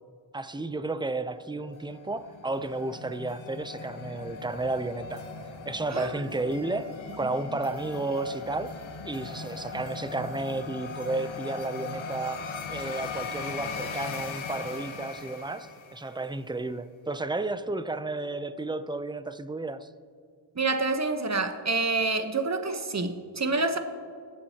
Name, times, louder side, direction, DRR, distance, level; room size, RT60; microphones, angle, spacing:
voice 1, 0.3-5.3 5.7-8.8 9.0-19.9, right 2 dB, 10° right, 0.5 m, -32 dB
sound 1, 1.6-16.3, left 4 dB, 85° left, 1.0 m, -39 dB
voice 2, 20.6-23.8, right 3 dB, 35° right, 1.0 m, -27 dB
22.5 x 7.7 x 2.9 m
cardioid pair, 55°, 47 cm